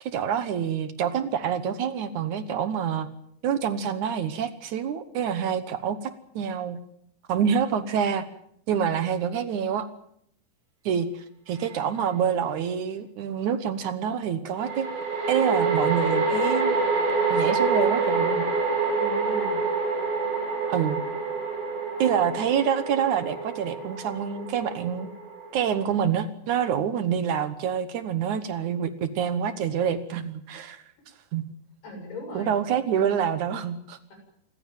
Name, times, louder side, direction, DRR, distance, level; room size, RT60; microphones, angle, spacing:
voice 1, 0.0-3.1 3.4-6.8 7.3-8.3 8.7-9.9 10.9-14.9 15.3-16.8 17.3-18.4 20.7-21.0 22.0-25.1 25.5-30.8 31.3-31.4 32.4-34.0, right 8 dB, 65° right, 12 dB, 2.2 m, -27 dB
voice 2, 8.8-9.1 18.9-19.6 31.8-32.8, equal, 85° left, 3 dB, 9.2 m, -39 dB
sound 1, 11.6-11.7 14.6-26.0, right 4 dB, 80° right, 8.3 m, -27 dB
26.5 x 15.0 x 9.1 m, 0.69 s
omnidirectional pair, 4.5 m